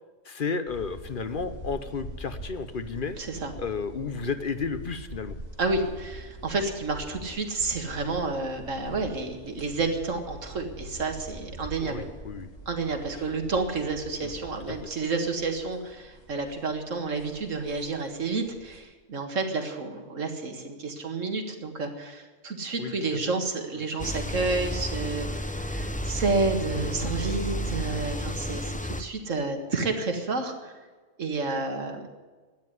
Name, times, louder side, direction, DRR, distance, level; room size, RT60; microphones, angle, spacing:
voice 1, 0.2-3.2 3.6-5.4 11.8-12.5 14.2-14.3 14.7-14.8 22.8-23.2 23.7-23.8, left 5 dB, 45° left, 10 dB, 0.9 m, -32 dB
sound 1, 0.7-18.8, equal, 85° left, 4.9 m, -44 dB
voice 2, 3.2-3.5 5.6-12.0 12.7-30.7 31.2-32.1, right 3 dB, 80° right, 5 dB, 2.1 m, -30 dB
sound 2, 24.0-29.0, equal, 10° left, 0.4 m, -32 dB
12.5 x 9.7 x 9.6 m, 1.4 s
omnidirectional pair, 1.3 m